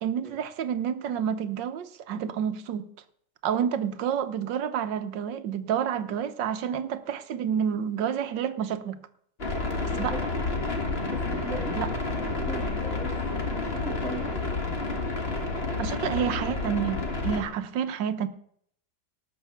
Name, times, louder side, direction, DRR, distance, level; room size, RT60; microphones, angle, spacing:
voice 1, 0.0-2.9 3.4-9.0 10.0-10.1 11.8-11.9 15.8-18.3, right 8 dB, 90° right, 12 dB, 1.5 m, -29 dB
sound 1, 9.4-17.4, left 3 dB, 35° left, 1.9 m, -30 dB
voice 2, 9.9-10.2 11.1-11.8 12.1-13.2 13.5-14.6, right 1 dB, ahead, -3 dB, 3.3 m, -38 dB
18.5 x 6.3 x 6.9 m, 0.66 s
omnidirectional pair, 1.9 m